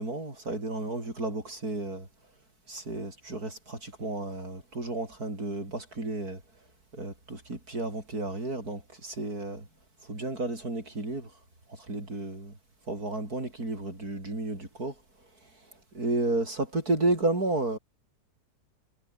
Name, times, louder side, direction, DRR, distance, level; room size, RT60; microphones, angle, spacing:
voice 1, 0.0-2.1 2.7-6.4 6.9-9.7 10.1-11.3 11.9-12.5 12.9-14.9 15.9-17.8, right 2 dB, 65° right, 7.3 m, -32 dB
omnidirectional pair, 1.7 m